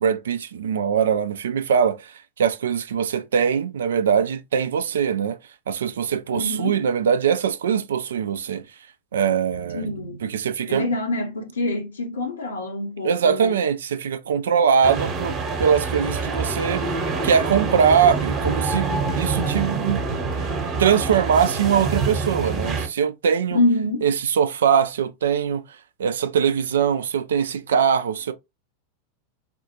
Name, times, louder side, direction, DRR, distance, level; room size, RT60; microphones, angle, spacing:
voice 1, 0.0-5.4 5.7-8.6 9.1-9.9 10.2-10.9 13.0-16.8 17.2-18.9 19.2-20.0 20.3-20.5 20.8-23.6 24.0-25.6 26.0-28.3, right 7 dB, 65° right, 0.4 m, -22 dB
voice 2, 6.3-6.8 9.7-10.2 10.7-13.5 23.5-24.1, left 2 dB, 70° left, 0.8 m, -25 dB
sound 1, 14.8-22.9, right 4 dB, 30° right, 1.0 m, -26 dB
4.2 x 2.4 x 2.8 m
figure-of-eight pair, 90°, 0 cm